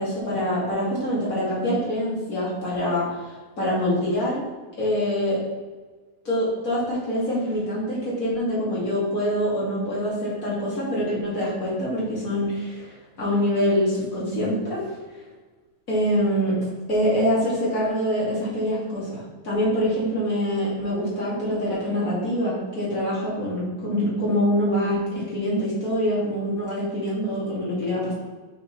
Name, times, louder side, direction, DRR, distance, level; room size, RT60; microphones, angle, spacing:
voice 1, 0.0-3.2 3.6-4.4 4.8-5.4 6.2-14.8 15.9-16.6 16.9-28.1, equal, 85° left, -7 dB, 3.2 m, -25 dB
6.4 x 4.2 x 5.7 m, 1.3 s
omnidirectional pair, 1.4 m